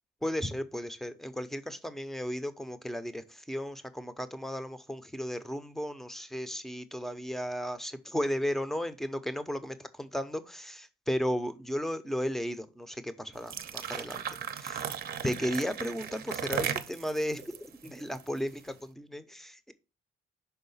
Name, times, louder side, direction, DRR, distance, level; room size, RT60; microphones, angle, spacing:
voice 1, 0.2-14.2 14.6-14.9 15.2-19.7, equal, ahead, 0.7 m, -35 dB
sound 1, 13.3-18.6, right 8 dB, 50° right, 0.7 m, -36 dB
5.7 x 3.7 x 5.4 m
cardioid pair, 90°, 20 cm